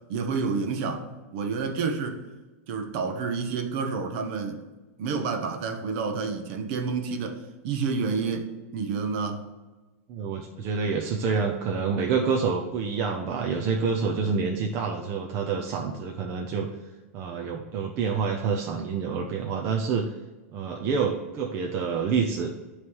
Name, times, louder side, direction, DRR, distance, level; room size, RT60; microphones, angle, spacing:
voice 1, 0.1-1.0 1.3-2.2 2.7-4.6 5.0-9.4, right 5 dB, 50° right, 1.0 m, -29 dB
voice 2, 10.1-16.7 17.1-20.0 20.5-22.5, right 5 dB, 35° right, 0.7 m, -27 dB
9.4 x 3.2 x 5.4 m
supercardioid pair, 150°, 8 cm